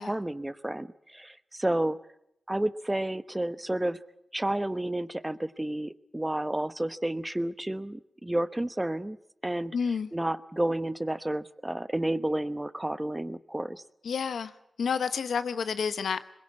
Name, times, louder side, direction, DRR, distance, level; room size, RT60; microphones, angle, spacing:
voice 1, 0.0-2.0 2.5-4.0 4.3-9.2 9.4-9.7 10.1-13.8, right 1 dB, 15° right, 14 dB, 1.0 m, -31 dB
voice 2, 9.7-10.1 14.0-14.5 14.8-16.4, left 6 dB, 85° left, 12 dB, 1.0 m, -30 dB
22.0 x 21.0 x 8.6 m, 0.78 s
cardioid pair, 50°, 0 cm